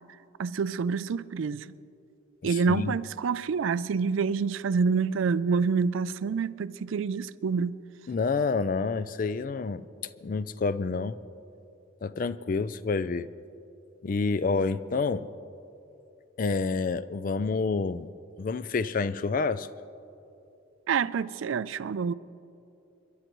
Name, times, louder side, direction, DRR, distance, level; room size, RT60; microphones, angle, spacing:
voice 1, 0.4-1.7 2.4-7.8 20.9-22.1, right 5 dB, 70° right, 0.4 m, -27 dB
voice 2, 2.4-2.9 8.1-11.2 12.0-13.3 14.0-15.3 16.4-18.1 18.4-19.7, left 4 dB, 40° left, 0.3 m, -28 dB
29.5 x 11.5 x 3.0 m
head